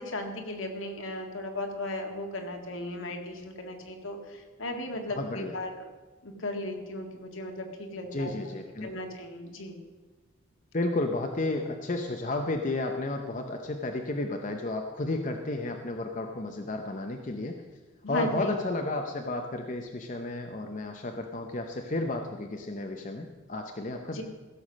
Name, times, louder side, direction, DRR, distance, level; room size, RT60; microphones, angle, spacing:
voice 1, 0.0-5.8 6.2-8.3 8.8-9.8 18.0-18.7 24.1-24.2, left 1 dB, 70° left, 3 dB, 1.9 m, -36 dB
voice 2, 5.2-5.5 8.1-8.9 10.7-17.5 18.1-24.2, left 2 dB, 35° left, 3 dB, 0.8 m, -32 dB
16.0 x 7.1 x 6.2 m, 1.3 s
head